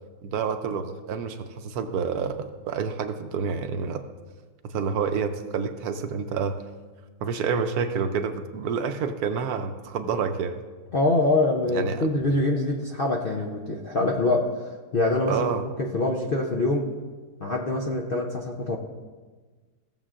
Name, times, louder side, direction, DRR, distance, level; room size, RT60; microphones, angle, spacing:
voice 1, 0.2-4.0 4.6-6.6 7.2-10.6 11.7-12.1 15.3-15.6, right 6 dB, 70° right, 7 dB, 1.1 m, -28 dB
voice 2, 10.9-14.5 14.9-15.5 15.8-16.9 17.4-18.8, left 2 dB, 50° left, 0 dB, 0.6 m, -24 dB
16.5 x 7.2 x 2.5 m, 1.4 s
omnidirectional pair, 1.8 m